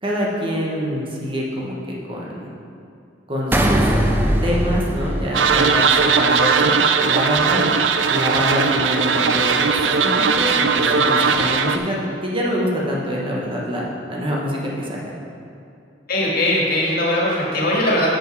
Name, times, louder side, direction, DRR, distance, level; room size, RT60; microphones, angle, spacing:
voice 1, 0.0-2.5 3.3-3.9 4.4-7.6 8.1-15.1, equal, 30° right, -3 dB, 1.2 m, -25 dB
sound 1, 3.5-6.1, right 1 dB, 10° right, 0.5 m, -20 dB
sound 2, 5.3-11.8, right 5 dB, 85° right, 0.5 m, -18 dB
voice 2, 16.1-18.1, left 1 dB, 55° left, -3 dB, 1.9 m, -20 dB
7.2 x 6.4 x 6.1 m, 2.5 s
head